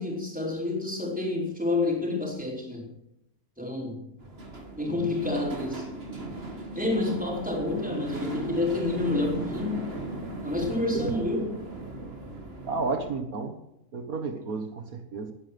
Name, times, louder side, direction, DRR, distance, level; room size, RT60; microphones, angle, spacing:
voice 1, 0.0-2.9 3.6-4.0 4.7-5.9 6.7-9.9 10.4-11.5, left 2 dB, 5° right, -2 dB, 5.0 m, -29 dB
sound 1, 4.2-13.1, right 2 dB, 40° right, 2.7 m, -38 dB
voice 2, 4.8-5.1 10.9-11.2 12.7-13.6 13.9-15.3, right 4 dB, 75° right, 5 dB, 1.9 m, -32 dB
19.5 x 10.5 x 6.1 m, 0.82 s
omnidirectional pair, 1.5 m